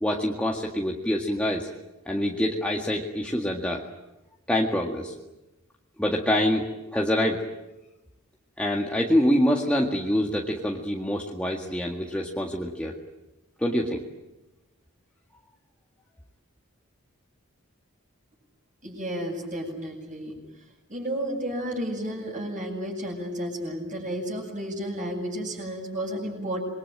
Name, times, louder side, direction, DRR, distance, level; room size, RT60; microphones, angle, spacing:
voice 1, 0.0-1.7 2.1-3.8 4.5-5.1 6.0-7.4 8.6-12.9 13.6-14.0, equal, 5° left, -1 dB, 2.0 m, -25 dB
voice 2, 18.8-20.3 20.9-26.6, equal, 40° right, -7 dB, 7.7 m, -32 dB
27.5 x 22.5 x 9.1 m, 1.0 s
head